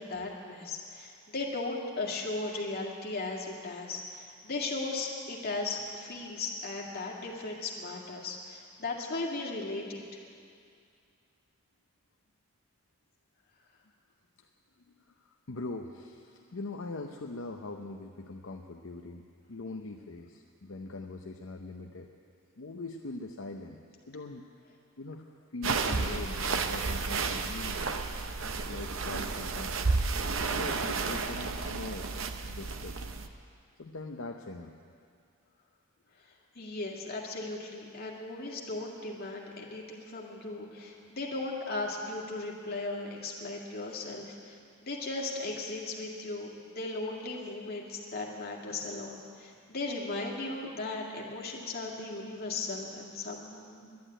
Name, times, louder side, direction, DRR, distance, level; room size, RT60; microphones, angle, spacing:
voice 1, 0.0-10.2 36.6-54.0, left 2 dB, 45° left, -2 dB, 2.0 m, -37 dB
voice 2, 15.0-22.1 22.6-23.8 24.1-24.5 25.0-25.2 25.5-28.0 28.6-30.0 30.6-33.1 33.8-34.7, left 3 dB, 60° left, 2 dB, 0.7 m, -42 dB
sound 1, 25.6-33.3, right 4 dB, 60° right, 0.7 m, -32 dB
11.5 x 10.0 x 10.0 m, 2.3 s
head